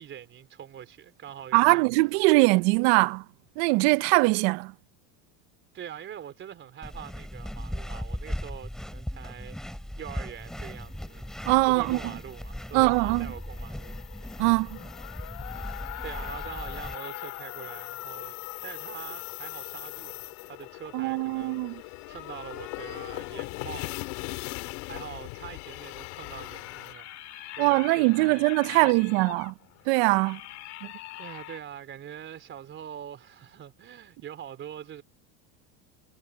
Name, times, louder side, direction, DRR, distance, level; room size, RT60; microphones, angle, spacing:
voice 1, 0.0-1.9 5.7-11.2 11.6-14.0 15.8-18.4 18.6-23.9 24.8-27.1 27.5-29.1 31.1-35.0, right 10 dB, 30° right, 3.8 m, -43 dB
voice 2, 1.5-3.2 3.6-4.7 11.5-12.0 12.7-13.3 14.4-14.8 20.9-21.7 27.6-29.5 29.9-30.4, right 25 dB, 60° right, 0.8 m, -22 dB
sound 1, 6.8-17.0, equal, ahead, 3.4 m, -38 dB
sound 2, 10.5-26.9, left 28 dB, 65° left, 3.4 m, -41 dB
sound 3, 14.3-23.6 25.7-31.6, left 15 dB, 45° left, 2.4 m, -44 dB
supercardioid pair, 150°, 38 cm